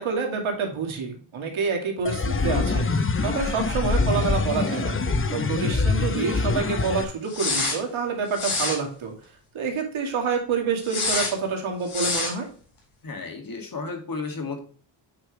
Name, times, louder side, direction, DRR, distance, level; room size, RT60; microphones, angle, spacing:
voice 1, 0.0-2.9 3.2-5.0 5.3-9.1 9.5-12.5, right 5 dB, 80° right, 1 dB, 2.4 m, -27 dB
sound 1, 2.0-7.0, left 3 dB, 25° left, 0.7 m, -24 dB
voice 2, 2.4-2.7 13.0-14.6, left 4 dB, 45° left, 3 dB, 2.3 m, -33 dB
sound 2, 7.3-7.8 8.3-8.8 10.8-11.3 11.9-12.3, left 3 dB, 85° left, 3.8 m, -26 dB
8.7 x 4.8 x 3.2 m, 0.44 s
cardioid pair, 80°, 48 cm